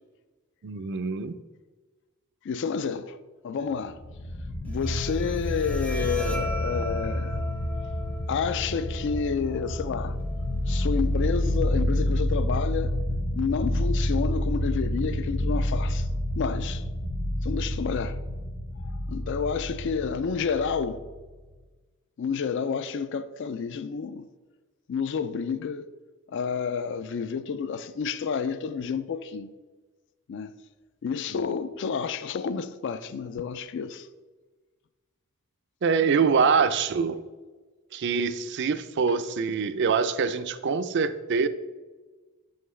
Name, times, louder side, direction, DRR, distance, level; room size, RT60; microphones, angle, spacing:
voice 1, 0.6-1.4 35.8-37.2 37.9-41.5, right 5 dB, 55° right, 0.4 m, -24 dB
voice 2, 2.4-3.2 3.4-4.0 4.6-7.4 8.3-10.2 10.7-13.0 13.3-16.1 16.4-16.8 17.4-18.2 18.8-21.0 22.2-24.3 24.9-25.9 26.3-29.5 30.3-30.5 31.0-34.1, left 6 dB, 55° left, 0.3 m, -30 dB
sound 1, 3.9-21.2, left 1 dB, 90° left, 1.1 m, -29 dB
Bowed string instrument, 4.7-11.7, left 1 dB, 5° left, 0.5 m, -40 dB
8.1 x 5.6 x 3.2 m
head